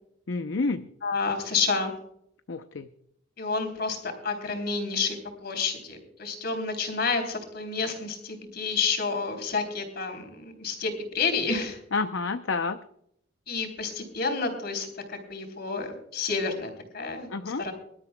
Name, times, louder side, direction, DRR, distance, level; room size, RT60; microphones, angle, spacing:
voice 1, 0.3-0.9 2.5-2.9 11.9-12.8 17.3-17.6, left 4 dB, 70° left, 9 dB, 0.6 m, -29 dB
voice 2, 1.0-1.9 3.4-11.8 13.5-17.3 17.6-17.7, left 4 dB, 55° left, 4 dB, 3.5 m, -30 dB
24.5 x 12.5 x 2.2 m, 0.72 s
head